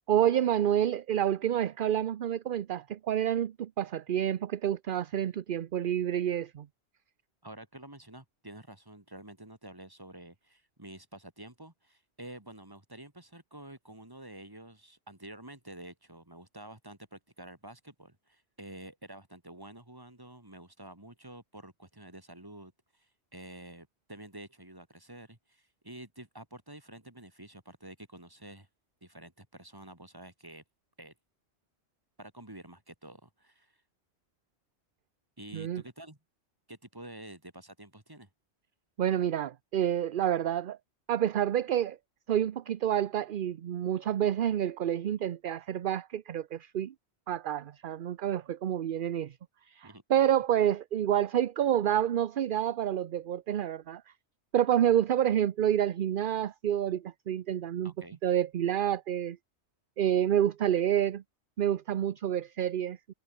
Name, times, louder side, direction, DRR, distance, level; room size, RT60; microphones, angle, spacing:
voice 1, 0.1-6.7 35.5-35.8 39.0-40.8 41.1-42.0 42.3-46.9 47.3-49.3 49.7-54.0 54.5-57.9 58.2-59.4 60.0-61.2 61.6-63.0, right 10 dB, 55° right, 0.7 m, -28 dB
voice 2, 7.4-28.7 29.0-30.6 31.0-31.1 32.2-33.8 35.4-36.2 36.7-38.3 49.8-50.0 57.8-58.2, right 1 dB, 20° right, 2.9 m, -49 dB
omnidirectional pair, 1.1 m